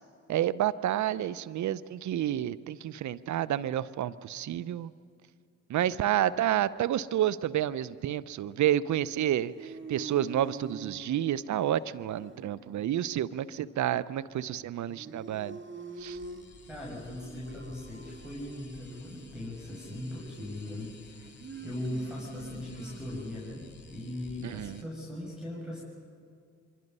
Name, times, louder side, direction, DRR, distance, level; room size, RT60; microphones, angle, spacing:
voice 1, 0.3-4.9 5.7-15.6 16.0-16.2 24.4-24.8, right 11 dB, 60° right, 17 dB, 0.7 m, -30 dB
sound 1, 9.1-23.6, right 3 dB, 40° right, 1.8 m, -47 dB
sound 2, 16.0-24.8, left 4 dB, 35° left, 3.2 m, -53 dB
voice 2, 16.7-21.3 21.6-25.8, left 1 dB, ahead, -6 dB, 6.7 m, -39 dB
25.0 x 23.5 x 5.5 m, 2.3 s
hypercardioid pair, 45°, 32 cm